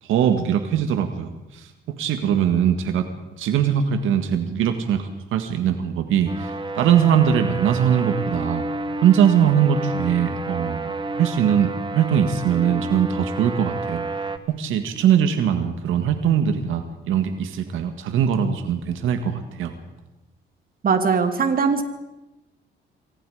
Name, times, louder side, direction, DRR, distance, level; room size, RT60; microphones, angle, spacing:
voice 1, 0.0-1.7 2.0-3.1 3.4-8.7 9.0-14.1 14.5-19.7, right 8 dB, 85° right, 7 dB, 2.0 m, -21 dB
sound 1, 6.3-14.4, right 2 dB, 25° right, 1.8 m, -30 dB
voice 2, 20.8-21.8, right 5 dB, 45° right, 7 dB, 3.0 m, -20 dB
28.0 x 23.5 x 5.1 m, 0.98 s
cardioid pair, 90°, 20 cm